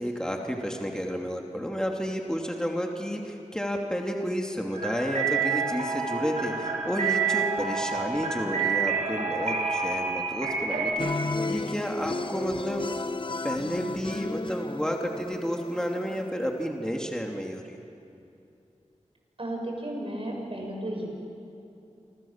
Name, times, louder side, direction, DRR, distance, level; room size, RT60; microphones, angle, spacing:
voice 1, 0.0-12.9 13.4-17.8, equal, 5° left, 1 dB, 2.8 m, -31 dB
sound 1, 4.7-10.9, right 5 dB, 70° right, 7.3 m, -28 dB
sound 2, 11.0-16.3, left 3 dB, 45° left, 1.2 m, -33 dB
voice 2, 19.4-21.0, right 1 dB, 50° right, 1 dB, 7.4 m, -33 dB
29.0 x 25.0 x 7.4 m, 2.8 s
wide cardioid pair, 55°, 12 cm